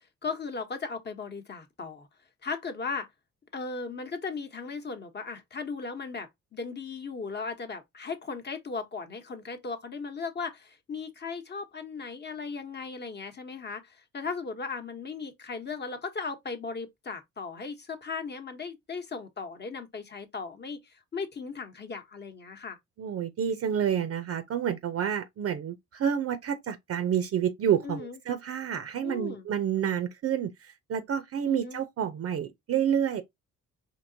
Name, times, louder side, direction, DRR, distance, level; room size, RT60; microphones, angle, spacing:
voice 1, 0.0-2.1 2.4-3.1 3.5-22.8 27.8-28.2 29.0-29.5 31.5-31.8, left 4 dB, 35° left, 0.9 m, -37 dB
voice 2, 23.0-33.2, right 9 dB, 50° right, 0.5 m, -29 dB
4.5 x 2.8 x 2.7 m
cardioid pair, 90°, 30 cm